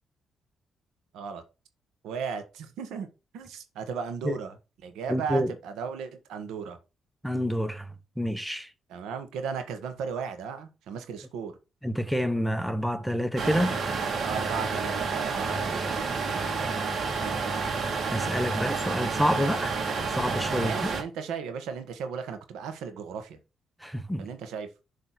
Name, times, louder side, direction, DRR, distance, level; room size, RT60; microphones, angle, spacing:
voice 1, 2.0-3.1 3.3-4.6 4.8-6.8 8.9-11.6 14.2-15.9 16.1-16.4 20.5-23.4 24.2-24.7, right 6 dB, 85° right, 1.4 m, -36 dB
voice 2, 5.1-5.5 7.2-7.9 8.2-8.7 11.8-13.8 18.1-19.8 20.2-20.9 23.8-24.3, equal, ahead, 0.8 m, -28 dB
sound 1, 13.4-21.0, right 4 dB, 50° right, 1.8 m, -29 dB
7.0 x 3.3 x 6.0 m
cardioid pair, 90°, 0 cm